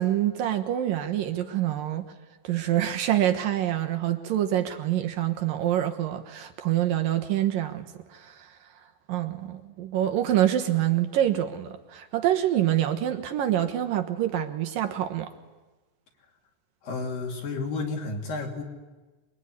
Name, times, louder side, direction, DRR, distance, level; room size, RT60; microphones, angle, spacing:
voice 1, 0.0-2.1 2.4-8.5 9.1-15.3, right 12 dB, 65° right, 6 dB, 2.5 m, -26 dB
voice 2, 16.8-18.6, left 3 dB, 55° left, 1 dB, 4.6 m, -31 dB
26.5 x 22.0 x 9.8 m, 1.2 s
omnidirectional pair, 5.1 m